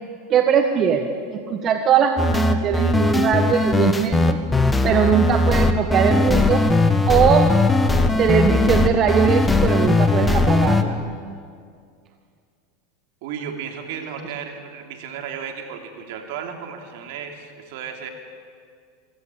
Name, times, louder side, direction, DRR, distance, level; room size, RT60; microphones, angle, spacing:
voice 1, 0.3-4.4 4.8-6.6 7.1-7.5 8.2-11.0, right 7 dB, 40° right, 5 dB, 1.5 m, -20 dB
sound 1, 2.2-10.8, left 2 dB, 10° left, 1.6 m, -18 dB
voice 2, 13.2-18.1, right 7 dB, 65° right, 4 dB, 3.1 m, -34 dB
26.0 x 15.0 x 8.6 m, 2.2 s
hypercardioid pair, 105°, 0 cm